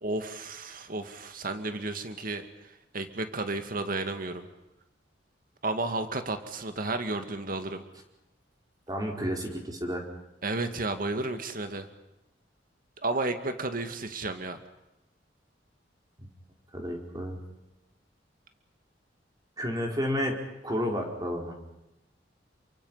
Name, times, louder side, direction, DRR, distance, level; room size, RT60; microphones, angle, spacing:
voice 1, 0.0-4.5 5.6-7.8 10.4-11.9 13.0-14.6, right 2 dB, 50° right, 8 dB, 2.2 m, -32 dB
voice 2, 8.9-10.1 16.2-16.3 16.7-17.4 19.6-21.6, equal, 20° right, 2 dB, 4.8 m, -31 dB
29.0 x 24.5 x 5.8 m, 0.93 s
head